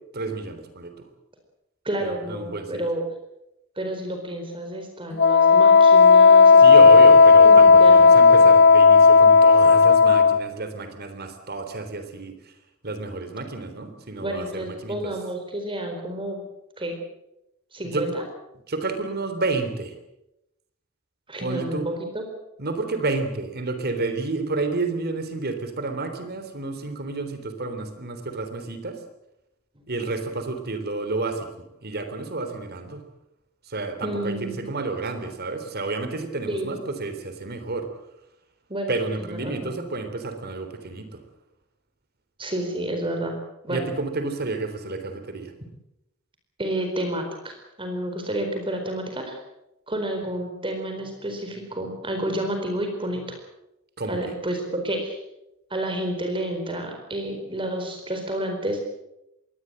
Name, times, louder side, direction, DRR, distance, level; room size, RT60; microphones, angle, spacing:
voice 1, 0.1-1.1 2.0-2.8 6.6-12.5 12.8-15.1 17.8-18.1 18.7-20.0 21.4-21.9 22.6-29.0 29.9-33.0 33.6-37.9 38.9-41.2 43.7-45.5 54.0-54.2, right 3 dB, 50° right, 8 dB, 3.5 m, -30 dB
voice 2, 1.8-3.0 3.8-7.2 7.4-8.5 14.2-16.4 16.8-17.0 17.7-18.2 21.3-22.2 34.0-34.7 36.5-36.7 38.7-39.7 42.4-43.4 43.6-43.8 46.6-49.4 49.9-53.4 54.1-55.2 55.7-58.8, right 1 dB, 25° right, 4 dB, 4.4 m, -30 dB
Wind instrument woodwind instrument, 5.2-10.4, left 4 dB, 55° left, 0.8 m, -12 dB
22.5 x 18.5 x 7.8 m, 0.85 s
head